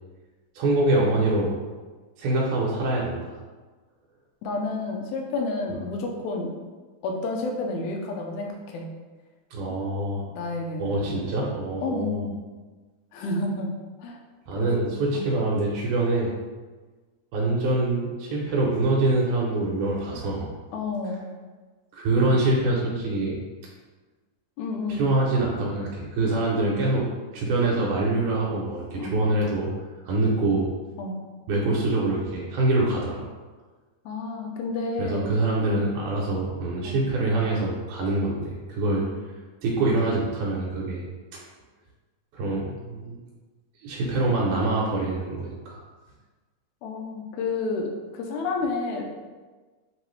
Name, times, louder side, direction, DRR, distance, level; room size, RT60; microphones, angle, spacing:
voice 1, 0.6-1.5 2.2-3.4 9.5-10.3 10.8-12.3 14.5-16.3 17.3-20.5 21.9-23.4 24.9-27.1 27.3-29.7 30.0-30.7 31.5-33.2 35.0-39.1 39.6-41.0 42.3-43.2 43.8-45.8, right 2 dB, 85° right, -4 dB, 2.1 m, -25 dB
voice 2, 4.4-6.5 7.0-8.9 9.7-9.8 10.3-11.2 11.8-12.4 13.1-13.7 14.0-14.2 14.6-14.7 15.1-15.2 20.7-21.2 24.6-25.1 29.0-29.1 31.0-31.2 34.1-35.3 35.7-35.9 36.8-37.0 38.9-39.0 46.8-49.0, left 3 dB, 80° left, 1 dB, 2.0 m, -30 dB
5.4 x 2.9 x 3.1 m, 1.3 s
omnidirectional pair, 3.5 m